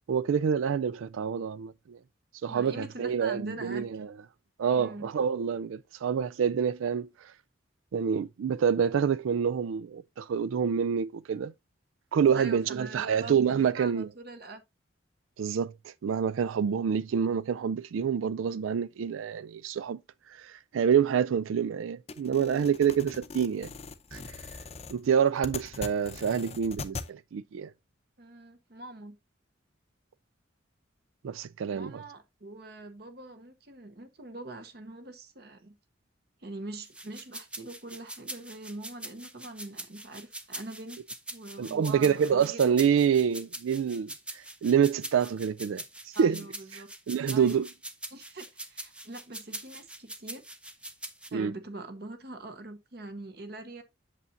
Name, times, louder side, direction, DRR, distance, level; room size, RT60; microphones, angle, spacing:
voice 1, 0.1-2.0 2.4-4.1 4.6-7.1 7.9-11.5 12.1-14.1 15.4-20.0 20.4-23.7 24.1-24.2 24.9-27.7 31.2-31.9 41.6-46.4 47.1-47.7 51.3-51.5, right 7 dB, 90° right, 0.4 m, -27 dB
voice 2, 2.5-3.8 4.7-5.1 12.3-14.6 28.2-29.1 31.7-35.7 36.4-41.0 41.3-42.7 46.1-46.9 47.3-47.6 48.1-50.4 51.3-53.8, right 2 dB, 55° right, 0.9 m, -43 dB
sound 1, 22.1-27.1, left 4 dB, 30° left, 0.6 m, -41 dB
sound 2, 36.8-51.3, right 1 dB, 5° right, 0.6 m, -42 dB
8.2 x 6.9 x 2.6 m
head